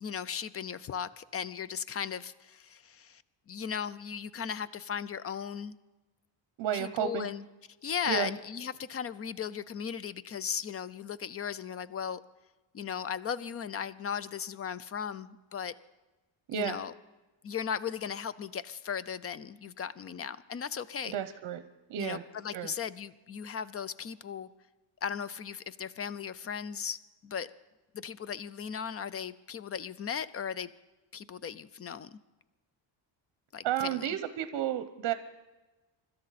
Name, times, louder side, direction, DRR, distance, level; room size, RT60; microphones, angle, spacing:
voice 1, 0.0-5.8 6.7-7.4 7.8-12.2 12.7-15.7 16.5-16.9 17.4-21.1 22.0-24.5 25.0-27.5 27.9-30.7 31.1-32.2 33.5-34.2, left 7 dB, 30° left, 17 dB, 0.4 m, -37 dB
voice 2, 6.6-7.3 8.1-8.3 16.5-16.8 21.0-21.6 21.9-22.2 22.5-22.7 33.6-35.1, right 10 dB, 60° right, 11 dB, 0.9 m, -32 dB
25.0 x 13.0 x 4.1 m, 1.1 s
cardioid pair, 150°, 47 cm